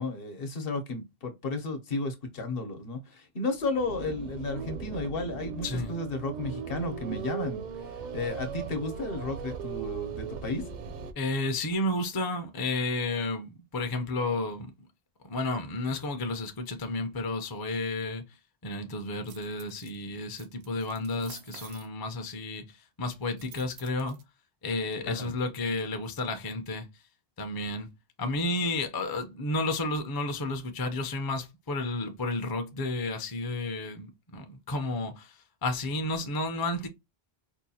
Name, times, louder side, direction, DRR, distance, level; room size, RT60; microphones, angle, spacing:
voice 1, 0.0-10.7 25.0-25.3, left 2 dB, 65° left, 1.0 m, -33 dB
sound 1, 3.5-11.1, right 7 dB, 55° right, 0.5 m, -38 dB
voice 2, 5.6-5.9 11.2-14.7 15.3-18.2 18.6-24.2 24.6-26.9 27.4-27.9 28.2-36.9, left 2 dB, 30° left, 0.5 m, -32 dB
sound 2, 19.2-20.0 20.4-21.9 23.4-24.2, right 8 dB, 85° right, 0.9 m, -49 dB
4.5 x 2.3 x 2.7 m
omnidirectional pair, 1.0 m